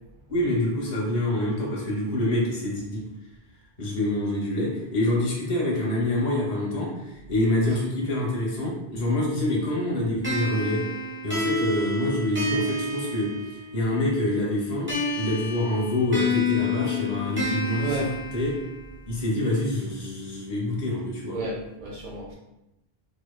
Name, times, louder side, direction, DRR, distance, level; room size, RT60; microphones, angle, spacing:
voice 1, 0.3-3.0 3.8-10.8 11.2-13.3 13.7-14.9 15.2-18.0 18.3-18.6 19.1-21.4, left 1 dB, 40° left, -3 dB, 0.7 m, -26 dB
sound 1, 10.2-13.9 14.9-18.9, left 2 dB, 15° right, 0.6 m, -29 dB
voice 2, 17.8-18.1 21.3-22.3, right 1 dB, 60° right, -3 dB, 0.6 m, -31 dB
2.9 x 2.1 x 2.2 m, 0.92 s
omnidirectional pair, 1.1 m